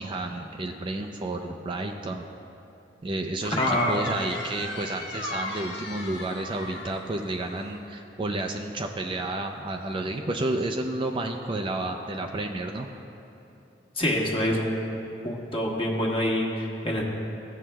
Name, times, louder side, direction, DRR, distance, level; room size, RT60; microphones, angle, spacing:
voice 1, 0.0-2.3 3.0-12.9, right 2 dB, 30° right, 3 dB, 0.4 m, -31 dB
sound 1, 3.4-7.8, left 2 dB, 70° left, 1.3 m, -35 dB
voice 2, 3.6-4.0 14.0-14.9 15.2-17.0, left 1 dB, 30° left, -2 dB, 1.2 m, -26 dB
15.5 x 7.3 x 2.2 m, 2.9 s
head